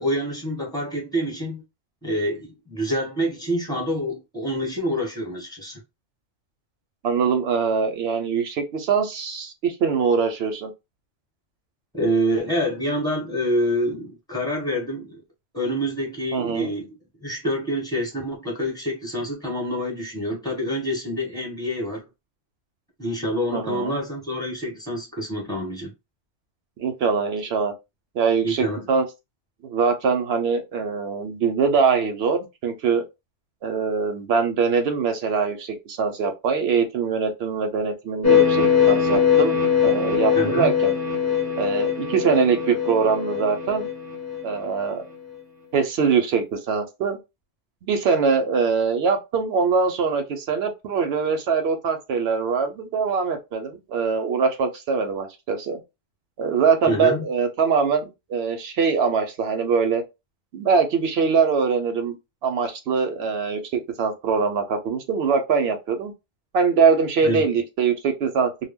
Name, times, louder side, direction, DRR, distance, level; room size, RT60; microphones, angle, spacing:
voice 1, 0.0-1.6 2.0-5.8 11.9-15.2 15.5-16.9 17.2-22.0 23.0-25.9 28.4-28.9 40.4-40.7 56.9-57.3 67.2-67.4, equal, 5° left, 0.9 m, -26 dB
voice 2, 7.0-10.7 16.3-16.7 23.5-23.9 26.8-27.7 28.1-29.1 29.6-33.0 33.6-39.6 39.8-40.9 41.6-43.9 44.4-45.0 45.7-47.2 47.8-55.8 56.4-60.0 60.5-62.2 62.4-66.1 66.5-68.5, right 5 dB, 65° right, 0.8 m, -23 dB
sound 1, 38.2-44.9, left 8 dB, 20° left, 0.5 m, -21 dB
2.1 x 2.1 x 3.5 m
omnidirectional pair, 1.2 m